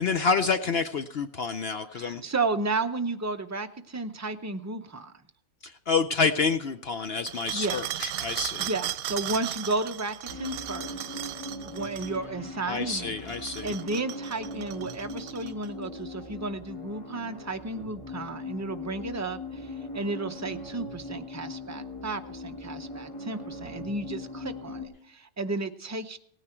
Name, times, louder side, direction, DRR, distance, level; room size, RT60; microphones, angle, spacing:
voice 1, 0.0-2.2 5.6-8.7 12.7-13.7, left 5 dB, 55° left, 9 dB, 0.7 m, -28 dB
voice 2, 1.9-5.1 7.5-7.9 8.6-11.2 11.6-13.2 13.6-26.2, right 3 dB, 25° right, 7 dB, 0.3 m, -33 dB
sound 1, 7.3-12.2 13.2-15.7, right 12 dB, 80° right, 1.1 m, -36 dB
sound 2, 10.3-24.9, left 2 dB, 20° left, 2.2 m, -40 dB
17.0 x 9.8 x 4.4 m, 0.71 s
omnidirectional pair, 1.5 m